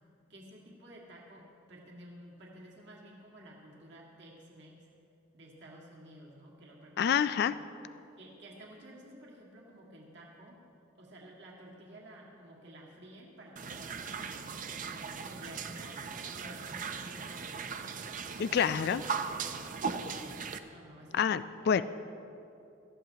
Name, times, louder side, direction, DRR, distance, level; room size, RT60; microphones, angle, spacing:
voice 1, 0.3-4.8 5.3-7.6 8.2-10.7 11.0-14.5 14.9-17.6 18.1-18.4 19.3-20.4 20.7-21.3 21.6-21.8, right 1 dB, 60° right, -3 dB, 2.0 m, -52 dB
voice 2, 7.0-7.5 18.4-19.0 21.1-21.8, left 7 dB, 55° left, 14 dB, 0.3 m, -27 dB
sound 1, 13.6-20.6, right 5 dB, 40° right, 0.5 m, -38 dB
18.5 x 14.0 x 2.9 m, 2.7 s
head